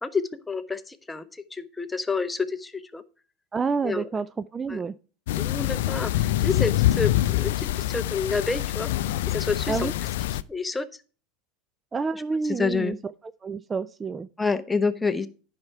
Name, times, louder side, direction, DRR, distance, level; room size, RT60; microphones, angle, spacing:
voice 1, 0.0-3.0 3.8-4.1 4.7-4.8 5.4-9.9 10.5-10.9 12.1-13.0 14.4-15.3, left 4 dB, 15° left, 0.8 m, -29 dB
voice 2, 3.5-4.3 4.5-4.9 9.7-9.9 11.9-13.0 13.4-14.3, right 5 dB, 25° right, 0.4 m, -28 dB
sound 1, 5.3-10.4, left 14 dB, 70° left, 0.4 m, -25 dB
9.6 x 5.8 x 4.6 m
hypercardioid pair, 85°, 0 cm